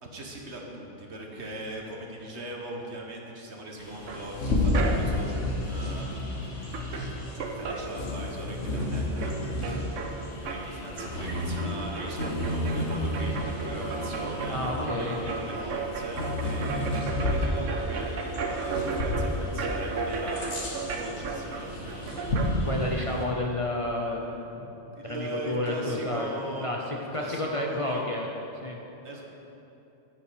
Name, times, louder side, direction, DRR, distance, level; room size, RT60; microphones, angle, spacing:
voice 1, 0.0-6.8 7.5-9.3 9.7-10.0 10.5-20.4 20.9-22.1 24.9-26.7 27.0-28.0 29.0-29.2, right 1 dB, 65° right, 0 dB, 1.6 m, -40 dB
Bird vocalization bird call bird song, 3.8-23.2, left 1 dB, 80° left, 1.9 m, -32 dB
sound 1, 4.1-5.3 6.4-6.5 6.7-8.5 8.8-22.5, right 4 dB, 80° right, 1.2 m, -34 dB
voice 2, 9.6-9.9 14.5-15.2 22.6-26.3 26.6-28.3 28.6-28.8, left 1 dB, 30° left, -1 dB, 0.8 m, -31 dB
9.9 x 9.8 x 5.1 m, 3.0 s
omnidirectional pair, 1.3 m